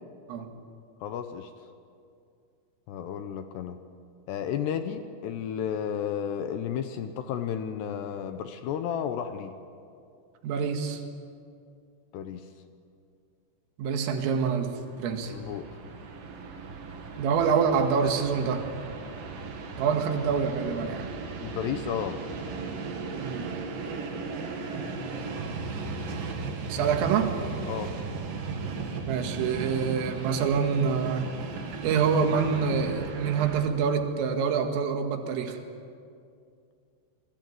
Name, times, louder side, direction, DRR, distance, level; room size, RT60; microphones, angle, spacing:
voice 1, 1.0-1.5 2.9-3.8 4.3-9.5 12.1-12.5 15.2-15.7 21.4-22.2 27.7-28.0, left 8 dB, 75° left, 8 dB, 2.7 m, -32 dB
voice 2, 10.4-11.0 13.8-15.3 17.2-18.6 19.8-21.1 23.2-23.5 26.7-27.3 29.1-31.3 31.8-35.6, right 6 dB, 85° right, 5 dB, 4.6 m, -26 dB
Train, 14.7-33.6, right 4 dB, 55° right, 3.3 m, -36 dB
28.0 x 21.5 x 9.5 m, 2.4 s
omnidirectional pair, 5.7 m